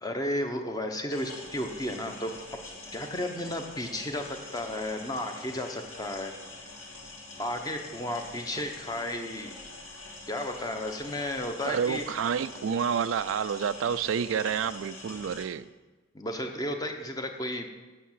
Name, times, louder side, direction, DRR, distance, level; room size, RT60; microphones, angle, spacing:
voice 1, 0.0-2.3 2.9-6.3 7.4-9.5 10.3-12.0 16.1-17.7, left 1 dB, 20° left, 4 dB, 0.8 m, -33 dB
sound 1, 1.1-15.4, left 2 dB, 75° left, 2.3 m, -45 dB
voice 2, 11.6-15.7, right 7 dB, 70° right, 14 dB, 0.3 m, -29 dB
8.4 x 6.7 x 7.3 m, 1.2 s
head